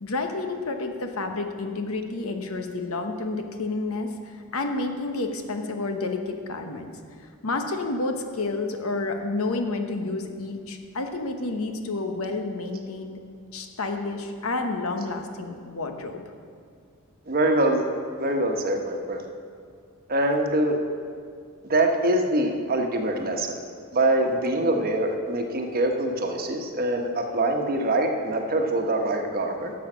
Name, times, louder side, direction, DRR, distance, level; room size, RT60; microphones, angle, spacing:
voice 1, 0.0-6.9 7.4-13.2 13.5-16.2, left 3 dB, 70° left, 5 dB, 1.0 m, -30 dB
voice 2, 17.3-17.8 18.2-19.3 20.1-20.8 21.6-23.6 23.9-29.7, right 1 dB, 45° right, 3 dB, 1.1 m, -24 dB
12.0 x 7.3 x 6.1 m, 2.2 s
head